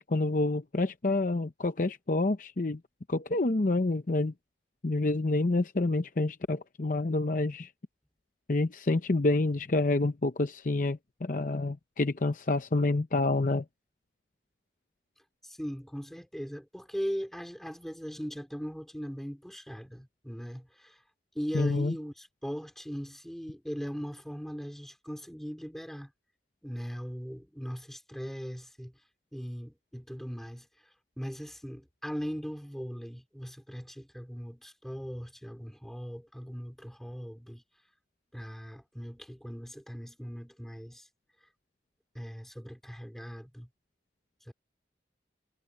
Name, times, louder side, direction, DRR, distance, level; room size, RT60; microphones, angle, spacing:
voice 1, 0.0-2.8 3.1-4.3 4.8-7.7 8.5-13.6 21.5-21.9, left 2 dB, 45° left, 0.7 m, -28 dB
voice 2, 15.4-21.0 21.3-26.1 26.6-28.9 29.3-30.7 31.2-37.6 38.3-41.1 42.1-43.7 44.5-44.6, equal, ahead, 3.3 m, -39 dB
head